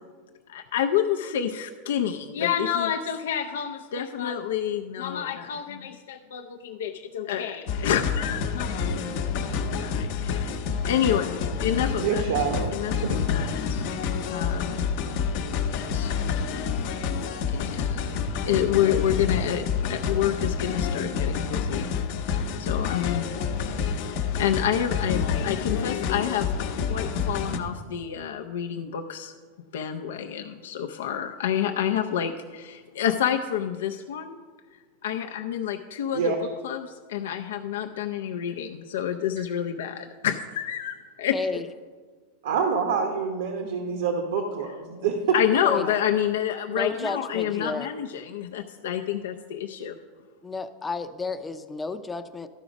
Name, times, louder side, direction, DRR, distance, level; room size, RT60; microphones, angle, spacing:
voice 1, 0.5-8.9 9.8-10.4 10.9-11.3 11.6-12.2 12.7-13.8 14.3-14.8 15.9-16.1 17.5-18.0 18.5-21.9 22.6-23.2 24.4-26.5 26.9-29.3 29.7-34.4 35.0-36.3 36.6-41.3 45.3-49.9, left 9 dB, 85° left, 4 dB, 0.5 m, -28 dB
sound 1, 7.7-27.6, left 6 dB, 60° left, 0.8 m, -28 dB
voice 2, 12.0-12.7 13.0-13.3 36.1-36.4 39.4-39.5 42.4-45.4, right 6 dB, 80° right, 4 dB, 1.0 m, -26 dB
voice 3, 41.3-41.7 45.0-45.1 45.6-45.9 46.7-47.9 50.4-52.5, left 3 dB, 10° left, 9 dB, 0.5 m, -32 dB
12.0 x 4.9 x 5.2 m, 1.5 s
supercardioid pair, 135°, 0 cm